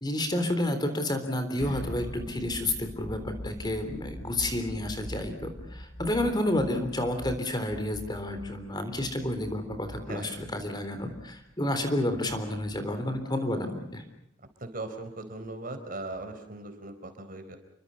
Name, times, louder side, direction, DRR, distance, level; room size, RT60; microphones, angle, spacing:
voice 1, 0.0-14.0, left 1 dB, 20° left, 8 dB, 3.6 m, -30 dB
sound 1, 1.5-13.4, equal, 55° left, 4.6 m, -43 dB
voice 2, 14.6-17.6, right 2 dB, 45° right, 8 dB, 4.1 m, -39 dB
29.5 x 24.0 x 5.6 m, 0.74 s
head